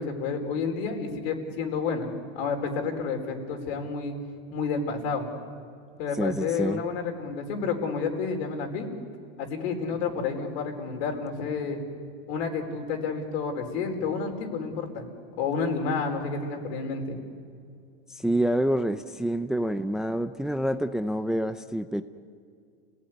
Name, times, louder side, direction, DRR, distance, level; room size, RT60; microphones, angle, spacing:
voice 1, 0.0-2.1 2.3-4.2 4.5-5.3 6.0-8.9 9.4-11.8 12.3-15.0 15.4-17.2, left 5 dB, 70° left, 4 dB, 4.9 m, -30 dB
voice 2, 6.2-6.8 18.1-22.0, right 1 dB, ahead, 9 dB, 0.6 m, -27 dB
29.5 x 18.5 x 9.6 m, 2.3 s
supercardioid pair, 135°, 32 cm